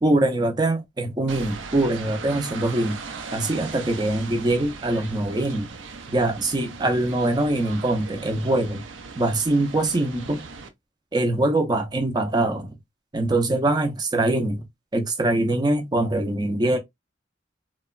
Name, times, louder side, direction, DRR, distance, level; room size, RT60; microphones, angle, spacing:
voice 1, 0.0-3.0 3.3-5.7 6.1-8.8 9.2-10.4 11.1-12.8 13.1-14.6 14.9-16.8, right 2 dB, 20° right, 0.5 m, -23 dB
sound 1, 1.3-10.7, right 4 dB, 75° right, 0.5 m, -39 dB
2.9 x 2.1 x 2.3 m
head